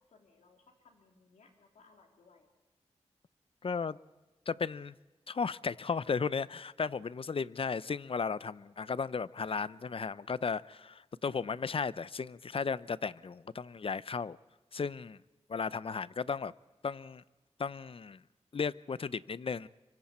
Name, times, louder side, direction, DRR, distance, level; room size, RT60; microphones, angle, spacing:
voice 1, 0.0-2.5, left 4 dB, 90° left, 1 dB, 3.1 m, -64 dB
voice 2, 3.6-4.0 4.5-4.9 5.3-14.4 14.7-15.2 15.5-16.5 16.8-17.2 17.6-18.2 18.5-19.7, left 5 dB, 50° left, 18 dB, 0.6 m, -35 dB
25.0 x 24.5 x 4.3 m, 1.1 s
cardioid pair, 45°, 12 cm